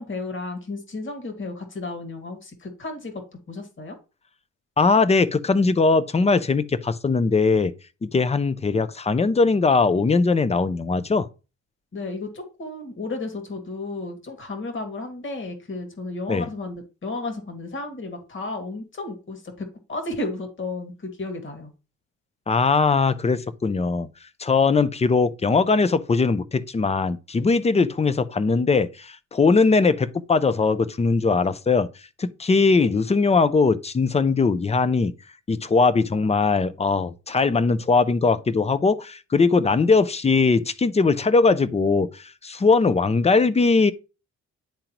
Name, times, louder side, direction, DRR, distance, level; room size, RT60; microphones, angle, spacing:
voice 1, 0.0-4.0 11.9-21.7, left 2 dB, 40° left, 2.1 m, -33 dB
voice 2, 4.8-7.7 8.0-11.3 16.3-16.5 22.5-24.1 24.4-31.9 32.2-35.1 35.5-43.9, left 4 dB, 20° left, 0.6 m, -20 dB
10.0 x 3.7 x 2.9 m
cardioid pair, 90°, 30 cm